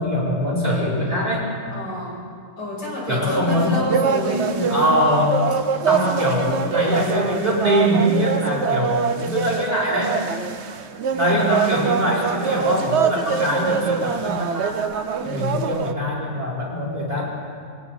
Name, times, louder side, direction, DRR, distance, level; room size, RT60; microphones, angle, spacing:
voice 1, 0.0-1.5 3.1-3.8 4.3-5.5 5.9-10.2 11.1-14.8 15.2-17.2, equal, 25° right, -4 dB, 4.3 m, -22 dB
voice 2, 1.7-2.2 2.6-4.8 15.2-15.8, left 1 dB, 70° left, -4 dB, 7.2 m, -29 dB
sound 1, 3.5-15.9, right 6 dB, 50° right, 0.9 m, -24 dB
27.0 x 24.5 x 4.4 m, 2.2 s
omnidirectional pair, 1.8 m